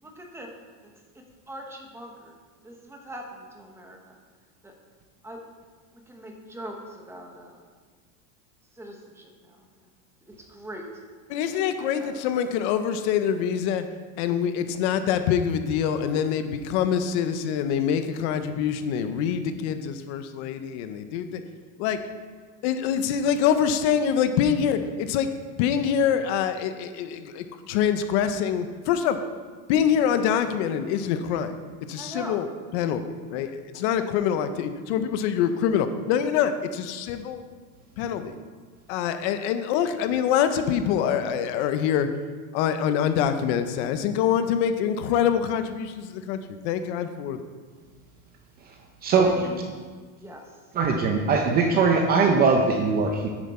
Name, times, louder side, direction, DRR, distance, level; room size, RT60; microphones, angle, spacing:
voice 1, 0.0-0.5 0.8-2.3 2.6-4.2 4.6-4.7 5.2-5.4 6.1-7.6 8.7-9.7 10.3-10.9 11.4-12.3 32.0-32.4 33.7-34.0 49.2-49.6 50.2-51.0, equal, 5° right, 1 dB, 1.0 m, -42 dB
voice 2, 11.3-13.9 14.2-21.4 21.8-22.0 22.6-25.3 25.6-29.2 29.7-31.5 31.9-32.5 32.7-37.4 38.0-38.3 38.9-42.1 42.5-46.4 46.6-47.4, left 8 dB, 55° left, 9 dB, 0.8 m, -25 dB
voice 3, 50.7-53.3, right 4 dB, 25° right, 3 dB, 0.5 m, -21 dB
9.6 x 9.1 x 4.3 m, 1.5 s
supercardioid pair, 165°, 42 cm